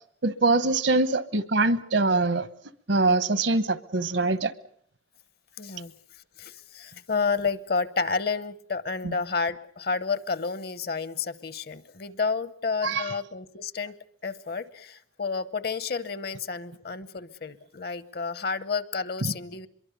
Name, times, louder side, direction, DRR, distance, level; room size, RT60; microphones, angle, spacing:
voice 1, 0.2-2.5 2.9-4.5 12.8-13.1, right 3 dB, 70° right, 15 dB, 1.1 m, -23 dB
voice 2, 5.6-5.9 6.4-13.9 14.2-19.7, left 5 dB, 50° left, 16 dB, 0.9 m, -30 dB
24.5 x 22.5 x 6.8 m, 0.65 s
head